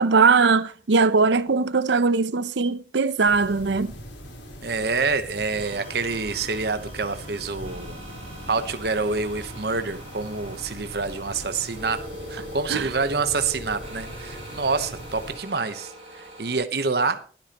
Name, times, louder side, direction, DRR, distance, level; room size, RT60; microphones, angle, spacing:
voice 1, 0.0-3.9 12.7-12.9, right 4 dB, 75° right, 0.6 m, -20 dB
sound 1, 3.2-15.4, equal, 90° left, 4.1 m, -41 dB
voice 2, 4.6-8.0 8.5-17.2, right 4 dB, 60° right, 1.0 m, -27 dB
sound 2, 5.5-16.6, equal, 35° right, 7.3 m, -42 dB
22.0 x 8.6 x 3.0 m
head